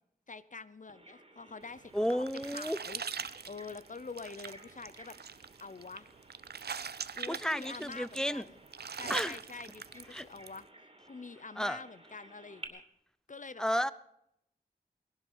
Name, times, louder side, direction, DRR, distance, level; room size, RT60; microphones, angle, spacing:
voice 1, 0.3-3.0 3.5-5.2 5.6-6.1 7.1-8.6 8.9-10.7 11.1-12.8 13.3-13.6, left 4 dB, 50° left, 16 dB, 0.7 m, -46 dB
Bird vocalization bird call bird song, 0.9-12.7, right 1 dB, 35° right, 2.7 m, -56 dB
sound 1, 1.7-10.6, right 6 dB, 85° right, 0.5 m, -43 dB
voice 2, 1.9-2.8 7.3-8.4 9.1-9.4 10.1-10.2 11.6-11.8 13.6-13.9, equal, 5° left, 17 dB, 0.5 m, -32 dB
19.0 x 12.0 x 5.5 m, 0.81 s
wide cardioid pair, 60°, 16 cm